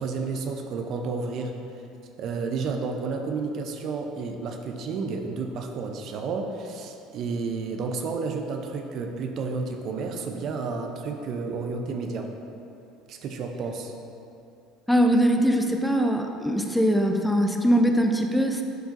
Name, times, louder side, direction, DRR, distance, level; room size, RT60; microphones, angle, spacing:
voice 1, 0.0-1.6 2.2-12.3 13.1-13.9, right 4 dB, 50° right, 4 dB, 0.6 m, -31 dB
voice 2, 14.9-18.6, equal, 5° left, 3 dB, 0.6 m, -22 dB
10.5 x 4.6 x 2.6 m, 2.7 s
hypercardioid pair, 65°, 0 cm